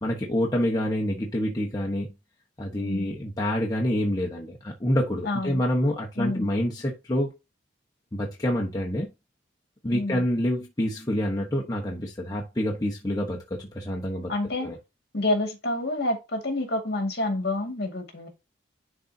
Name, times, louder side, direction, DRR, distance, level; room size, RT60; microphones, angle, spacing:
voice 1, 0.0-2.1 2.6-7.3 8.1-9.1 9.8-14.3 14.6-14.8, equal, 20° left, 1.0 m, -27 dB
voice 2, 2.8-3.1 5.3-5.6 6.2-6.5 9.9-10.2 14.3-14.7 15.1-18.3, left 2 dB, 50° left, 2.0 m, -28 dB
11.0 x 4.0 x 2.7 m
head